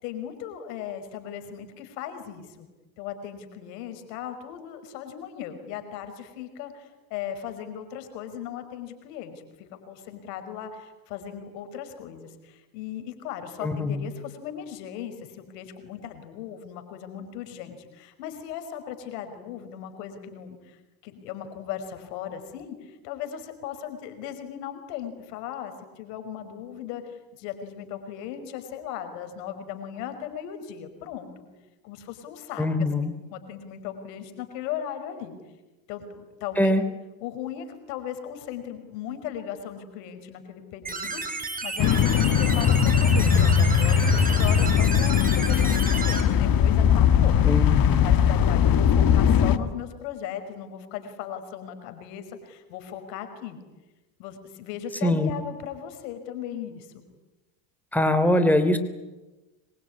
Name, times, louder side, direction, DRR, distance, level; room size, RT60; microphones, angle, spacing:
voice 1, 0.0-2.7 3.0-31.5 31.8-32.9 33.3-35.3 35.9-36.8 37.2-47.3 47.9-53.6 54.2-57.1, left 9 dB, 90° left, 8 dB, 5.5 m, -37 dB
voice 2, 13.6-14.1 32.6-33.1 36.6-36.8 47.5-48.1 55.0-55.3 57.9-58.8, left 1 dB, 5° left, 9 dB, 3.2 m, -22 dB
sound 1, 40.9-46.2, right 3 dB, 15° right, 6.0 m, -32 dB
sound 2, 41.8-49.6, left 8 dB, 45° left, 1.9 m, -20 dB
25.5 x 23.0 x 9.6 m, 1.1 s
supercardioid pair, 100°, 48 cm